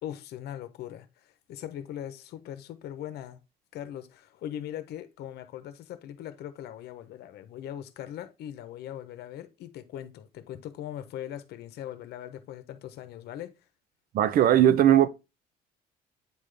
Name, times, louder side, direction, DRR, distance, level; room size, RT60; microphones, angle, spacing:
voice 1, 0.0-3.4 3.7-13.5, left 11 dB, 75° left, 0.9 m, -40 dB
voice 2, 14.1-15.1, right 11 dB, 60° right, 0.6 m, -19 dB
8.8 x 3.8 x 3.3 m
cardioid pair, 110°, 17 cm